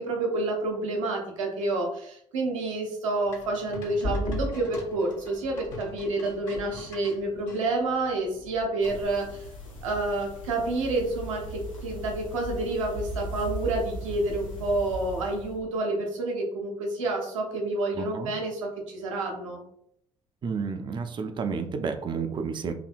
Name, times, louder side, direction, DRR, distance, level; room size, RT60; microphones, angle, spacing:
voice 1, 0.0-9.4 9.8-19.6, right 2 dB, 75° right, 1 dB, 0.7 m, -29 dB
sound 1, 3.3-7.6 8.8-9.3, left 2 dB, 55° left, 0.9 m, -45 dB
sound 2, 3.3-8.7, left 1 dB, 40° left, 0.5 m, -37 dB
sound 3, 8.8-15.6, equal, 90° left, 0.5 m, -38 dB
voice 2, 17.9-18.3 20.4-22.7, right 5 dB, 30° right, 6 dB, 0.4 m, -31 dB
2.7 x 2.6 x 2.5 m, 0.69 s
figure-of-eight pair, 50°, 16 cm